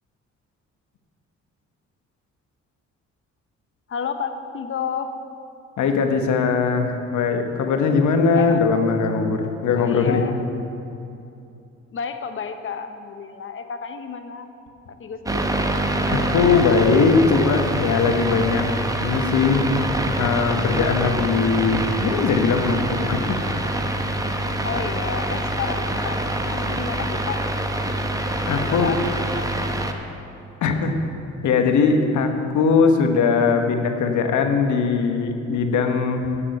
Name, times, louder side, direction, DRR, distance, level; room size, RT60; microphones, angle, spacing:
voice 1, 3.9-5.1 8.3-8.6 9.8-10.3 11.9-14.5 15.0-15.5 24.6-26.2 26.5-27.4 28.5-29.5 29.8-30.0, left 6 dB, 45° left, 8 dB, 1.0 m, -31 dB
voice 2, 5.8-10.2 16.1-18.6 19.0-19.7 20.2-23.4 28.5-29.0 30.6-31.0 31.4-36.3, left 5 dB, 70° left, 5 dB, 1.2 m, -20 dB
sound 1, 15.3-29.9, right 1 dB, 10° right, 0.9 m, -25 dB
8.5 x 7.3 x 8.6 m, 2.7 s
cardioid pair, 90°, 30 cm